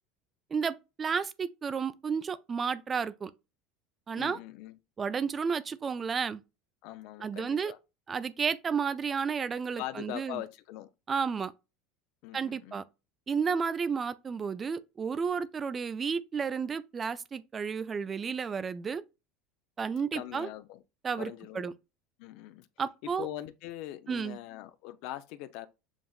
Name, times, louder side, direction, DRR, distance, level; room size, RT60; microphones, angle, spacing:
voice 1, 0.5-3.3 4.1-4.4 5.0-6.4 7.2-7.7 8.1-10.4 11.1-11.5 12.3-12.8 13.3-19.0 19.8-20.5 21.0-21.7 22.8-23.3 24.1-24.4, right 6 dB, 30° right, 0.4 m, -32 dB
voice 2, 4.2-4.7 6.8-7.8 9.8-10.9 12.2-12.8 20.1-20.8 21.1-21.7 22.2-22.7 23.2-25.7, left 14 dB, 65° left, 0.4 m, -42 dB
7.1 x 2.5 x 2.3 m
hypercardioid pair, 95°, 0 cm